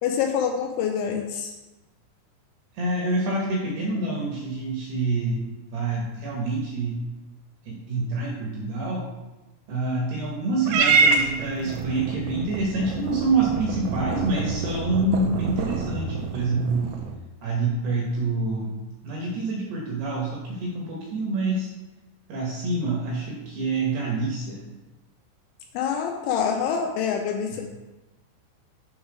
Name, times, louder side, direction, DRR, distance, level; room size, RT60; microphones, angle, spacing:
voice 1, 0.0-1.5 25.7-27.7, left 7 dB, 85° left, 3 dB, 2.8 m, -26 dB
voice 2, 2.7-5.4 5.7-7.0 7.6-9.1 9.7-16.9 17.4-18.8 19.0-21.7 22.3-24.6 27.5-27.7, right 3 dB, 70° right, -3 dB, 2.6 m, -27 dB
Purr / Meow, 10.7-17.2, right 4 dB, 90° right, 3.4 m, -26 dB
7.9 x 3.9 x 4.9 m, 1.1 s
omnidirectional pair, 5.7 m